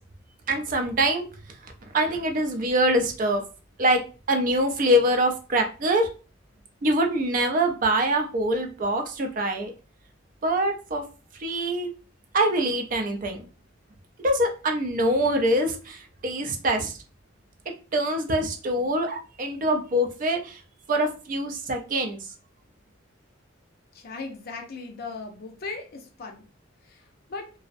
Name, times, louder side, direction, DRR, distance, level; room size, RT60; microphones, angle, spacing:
voice 1, 0.5-1.3 1.9-3.4 3.8-4.0 4.3-6.1 6.8-9.7 10.4-11.0 11.4-11.9 12.3-13.4 14.2-17.0 17.9-20.6 20.9-22.2, right 1 dB, 40° right, 5 dB, 0.4 m, -24 dB
voice 2, 23.9-26.4 26.9-27.0 27.3-27.5, left 3 dB, 50° left, 4 dB, 0.5 m, -37 dB
2.5 x 2.0 x 2.5 m, 0.34 s
head